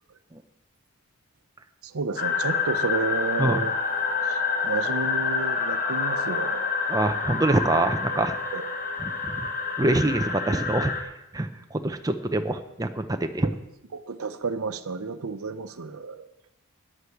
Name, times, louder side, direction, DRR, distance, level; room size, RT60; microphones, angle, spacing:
voice 1, 1.8-3.7 4.2-6.7 8.5-8.7 13.4-13.5 13.9-16.3, right 4 dB, 75° right, 12 dB, 0.7 m, -31 dB
sound 1, 2.2-11.0, left 5 dB, 40° left, 1.1 m, -28 dB
voice 2, 6.9-8.4 9.0-9.5 9.8-10.9 11.3-13.5, right 2 dB, 15° right, 7 dB, 0.6 m, -25 dB
9.9 x 8.1 x 7.0 m, 0.90 s
head